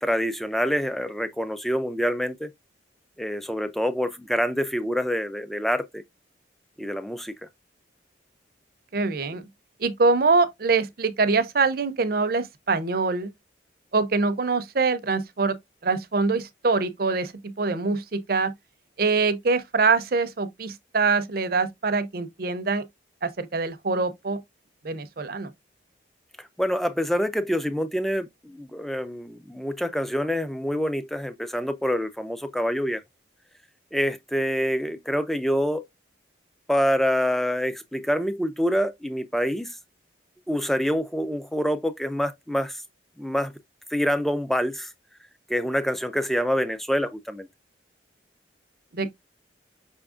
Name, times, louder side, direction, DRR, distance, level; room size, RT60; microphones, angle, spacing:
voice 1, 0.0-2.5 3.2-6.0 6.8-7.3 26.4-33.0 33.9-35.8 36.7-39.8 40.5-42.8 43.2-43.5 43.9-44.9 45.5-47.5, equal, ahead, 0.3 m, -26 dB
voice 2, 8.9-9.4 9.8-13.3 13.9-15.6 15.8-18.5 19.0-22.8 23.2-24.4 24.8-25.5 48.9-49.1, right 4 dB, 50° right, 0.6 m, -24 dB
5.5 x 3.5 x 2.4 m
head